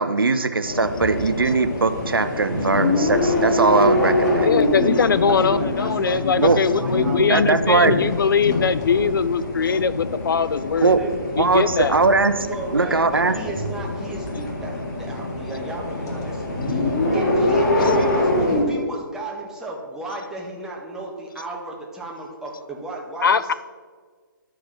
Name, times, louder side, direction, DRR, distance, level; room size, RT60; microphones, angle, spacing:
voice 1, 0.0-4.5 6.4-6.6 7.3-7.9 10.8-11.0 11.4-12.5 12.7-13.3, right 3 dB, 90° right, 10 dB, 0.8 m, -20 dB
sound 1, 0.6-18.6, left 1 dB, 45° left, 2.1 m, -24 dB
voice 2, 4.4-11.0 11.3-12.0 17.8-18.0 23.2-23.5, left 6 dB, 70° left, 15 dB, 0.5 m, -21 dB
voice 3, 4.9-7.3 10.9-11.2 12.4-23.5, right 2 dB, 5° right, -3 dB, 1.5 m, -35 dB
11.5 x 4.8 x 6.0 m, 1.6 s
figure-of-eight pair, 140°, 12 cm